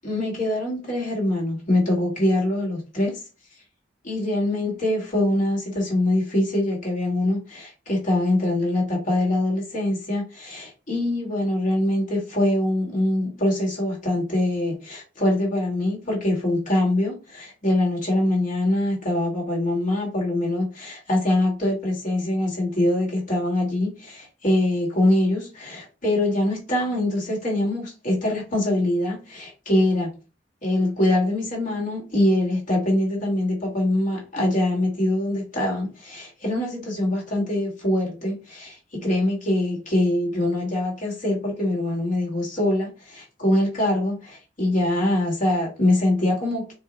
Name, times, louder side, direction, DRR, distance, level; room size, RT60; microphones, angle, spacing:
voice 1, 0.0-3.2 4.0-30.1 30.6-46.7, left 1 dB, 45° left, 1.5 m, -23 dB
4.5 x 2.2 x 4.0 m
head